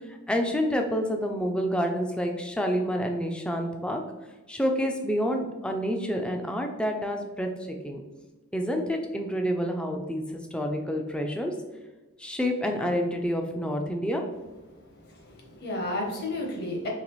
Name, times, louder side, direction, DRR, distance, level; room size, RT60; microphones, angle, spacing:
voice 1, 0.1-4.0 4.5-8.0 8.5-11.5 12.2-14.2, equal, 5° left, 3 dB, 0.3 m, -28 dB
voice 2, 14.7-16.9, left 1 dB, 50° left, 0 dB, 0.9 m, -33 dB
4.0 x 2.9 x 3.0 m, 1.2 s
head